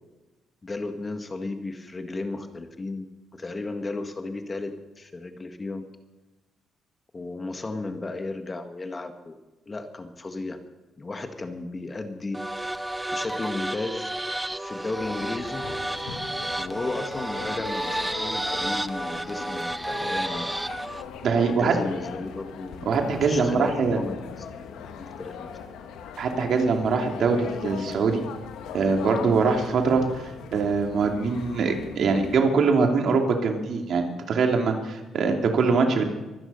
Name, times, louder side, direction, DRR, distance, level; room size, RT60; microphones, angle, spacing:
voice 1, 0.6-3.1 3.3-5.8 7.1-9.3 9.6-10.6 11.0-12.5 13.1-14.1 14.6-15.6 16.6-20.4 21.4-24.7 24.9-25.5 31.6-32.1, left 2 dB, 25° left, 7 dB, 1.6 m, -34 dB
sound 1, 12.3-21.1, right 1 dB, 10° right, 0.7 m, -31 dB
sound 2, 14.9-32.4, left 7 dB, 90° left, 1.7 m, -40 dB
voice 2, 21.2-21.8 22.9-24.0 26.2-28.2 28.7-36.0, right 4 dB, 65° right, 3 dB, 2.7 m, -23 dB
23.5 x 9.9 x 5.6 m, 1.1 s
cardioid pair, 90°, 0 cm